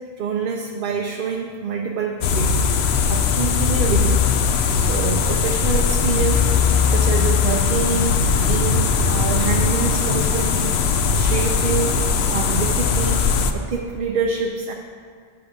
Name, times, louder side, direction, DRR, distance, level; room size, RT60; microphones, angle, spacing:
voice 1, 0.2-4.2 4.6-12.0 12.3-14.7, right 5 dB, 60° right, 1 dB, 0.8 m, -26 dB
sound 1, 2.2-13.5, left 5 dB, 85° left, 0.9 m, -19 dB
8.1 x 6.9 x 5.1 m, 2.2 s
omnidirectional pair, 1.0 m